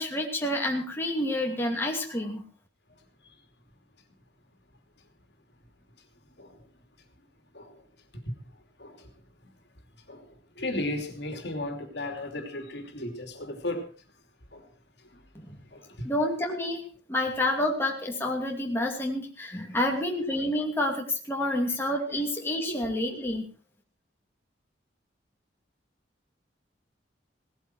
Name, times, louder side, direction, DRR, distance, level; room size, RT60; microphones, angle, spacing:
voice 1, 0.0-2.4 15.3-15.6 16.0-16.8 17.1-23.4, left 1 dB, 15° left, 0 dB, 2.7 m, -29 dB
voice 2, 10.6-13.8 14.5-14.6 15.7-15.8 22.7-22.8, left 1 dB, 65° left, 5 dB, 3.0 m, -34 dB
18.0 x 14.0 x 4.6 m, 0.38 s
head